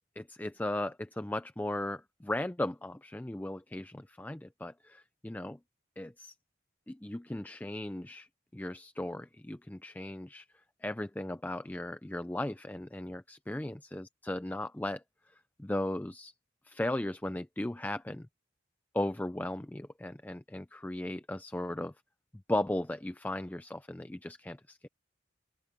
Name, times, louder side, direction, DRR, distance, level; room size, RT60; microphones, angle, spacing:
voice 1, 0.2-5.6 6.0-6.3 6.9-10.5 10.8-15.0 15.6-16.3 16.6-18.3 18.9-21.9 22.5-24.9, left 1 dB, 10° left, 0.4 m, -36 dB
open air
head